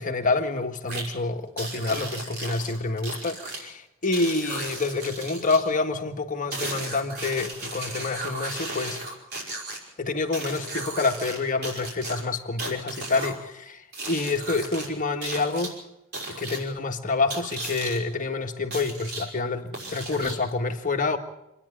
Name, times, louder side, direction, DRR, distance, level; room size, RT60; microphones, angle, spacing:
voice 1, 0.0-9.0 10.0-15.8 16.3-21.2, left 3 dB, 40° left, 4 dB, 1.7 m, -27 dB
sound 1, 0.9-1.1 1.6-3.6 4.1-5.6 6.5-9.8 10.3-11.4 11.6-13.4 13.9-14.9 15.2-15.7 16.1-16.6 17.3-18.0 18.7-19.3 19.7-20.5, right 2 dB, 50° right, 5.7 m, -35 dB
26.5 x 10.0 x 9.9 m, 0.88 s
head